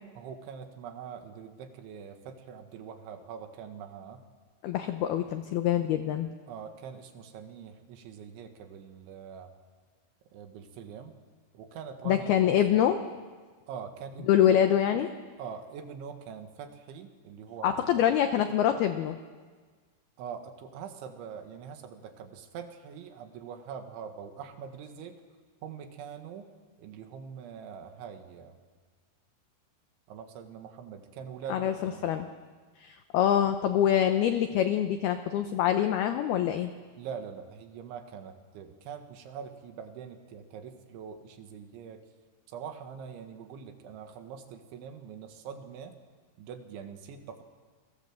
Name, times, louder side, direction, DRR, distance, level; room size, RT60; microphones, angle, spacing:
voice 1, 0.2-4.2 6.5-9.5 10.3-11.2 11.5-12.9 13.7-14.5 15.4-18.0 20.2-25.2 25.6-26.5 26.8-28.6 30.1-32.1 37.0-42.0 42.5-46.0 46.4-47.4, right 7 dB, 70° right, 6 dB, 3.8 m, -43 dB
voice 2, 4.6-6.3 12.1-13.0 14.3-15.1 17.6-19.2 31.5-32.3 32.8-36.7, left 10 dB, 90° left, 8 dB, 2.2 m, -25 dB
29.0 x 22.0 x 7.6 m, 1.5 s
omnidirectional pair, 5.9 m